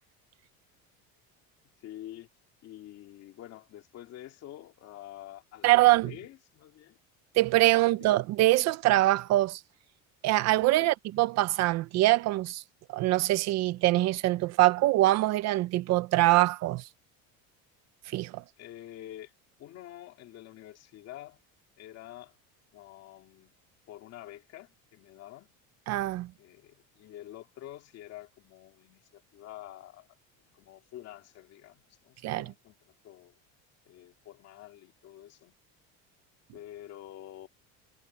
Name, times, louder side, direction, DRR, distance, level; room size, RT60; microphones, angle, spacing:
voice 1, 1.8-2.3 2.6-7.0 7.7-8.2 10.8-10.9 18.6-19.3 19.6-21.4 21.8-22.3 22.7-23.6 23.9-25.5 26.4-30.1 30.5-32.8 33.0-33.3 33.9-35.5 36.5-37.5, left 13 dB, 45° left, 2.2 m, -47 dB
voice 2, 5.6-6.1 7.3-9.6 10.2-12.6 12.9-16.9 18.1-18.4 25.9-26.3 32.2-32.5, right 17 dB, 45° right, 0.5 m, -24 dB
cardioid pair, 175°, 36 cm